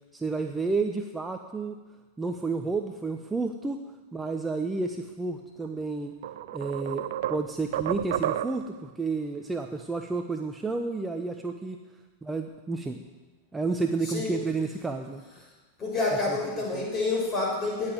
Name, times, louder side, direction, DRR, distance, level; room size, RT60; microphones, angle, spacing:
voice 1, 0.1-1.8 2.2-3.8 4.1-6.1 6.5-11.8 12.2-13.0 13.5-15.2 16.3-16.4, right 3 dB, 10° right, 5 dB, 0.9 m, -31 dB
sound 1, 5.6-5.8 6.2-8.8, right 12 dB, 55° right, 0.5 m, -31 dB
voice 2, 14.0-14.4 15.8-17.9, left 3 dB, 25° left, -2 dB, 6.1 m, -28 dB
18.5 x 7.5 x 8.0 m, 1.2 s
figure-of-eight pair, 90°, 0 cm